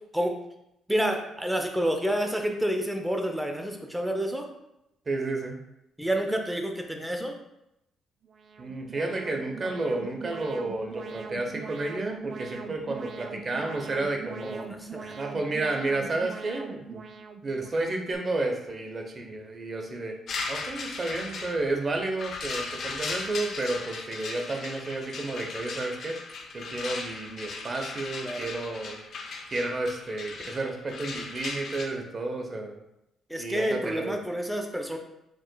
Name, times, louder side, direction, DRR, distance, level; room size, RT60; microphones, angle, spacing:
voice 1, 0.9-4.5 6.0-7.3 14.4-15.2 28.2-28.5 33.3-35.0, equal, 5° right, 3 dB, 0.7 m, -29 dB
voice 2, 5.1-5.6 8.6-14.6 15.2-17.0 17.4-20.2 20.5-26.2 26.5-29.0 29.5-32.8 33.4-34.2, right 2 dB, 35° right, 3 dB, 0.8 m, -31 dB
Alarm, 8.2-18.1, right 5 dB, 55° right, 0.4 m, -42 dB
sound 1, 20.3-31.9, left 4 dB, 60° left, 0.7 m, -37 dB
4.9 x 3.6 x 2.3 m, 0.85 s
cardioid pair, 90°, 0 cm